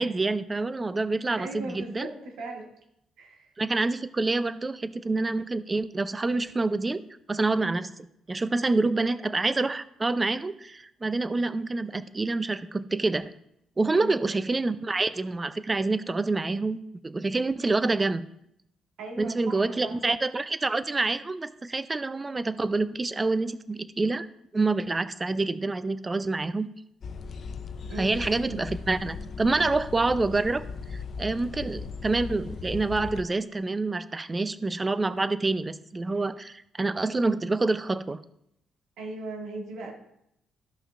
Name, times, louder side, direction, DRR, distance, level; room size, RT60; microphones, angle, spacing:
voice 1, 0.0-2.1 3.6-7.0 7.3-7.9 8.3-13.2 13.8-16.8 17.0-18.3 19.2-24.3 24.5-26.7 28.0-30.6 30.9-38.2, right 3 dB, 25° right, 13 dB, 0.5 m, -27 dB
voice 2, 1.3-2.7 3.2-3.5 13.9-14.2 19.0-20.0 27.9-28.2 39.0-39.9, right 2 dB, 80° right, 0 dB, 2.0 m, -38 dB
sound 1, 27.0-33.2, left 5 dB, 55° left, 0.5 m, -38 dB
14.5 x 5.7 x 2.5 m, 0.78 s
cardioid pair, 90°, 0 cm